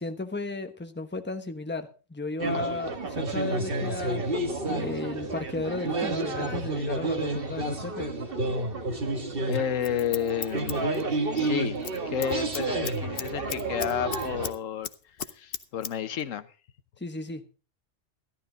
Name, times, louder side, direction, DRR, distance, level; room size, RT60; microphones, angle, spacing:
voice 1, 0.0-4.2 4.7-8.1 17.0-17.5, left 3 dB, 10° left, 6 dB, 1.0 m, -34 dB
sound 1, 2.4-14.5, right 2 dB, 45° right, 1.7 m, -30 dB
voice 2, 9.5-11.0 11.3-11.8 12.1-14.9 15.3-16.5, left 9 dB, 80° left, 12 dB, 1.2 m, -31 dB
Scissors, 9.5-11.5 11.8-12.0 12.2-14.6 14.8-15.9 16.2-16.3, left 8 dB, 55° left, 0.9 m, -36 dB
14.0 x 12.0 x 3.9 m, 0.36 s
omnidirectional pair, 1.3 m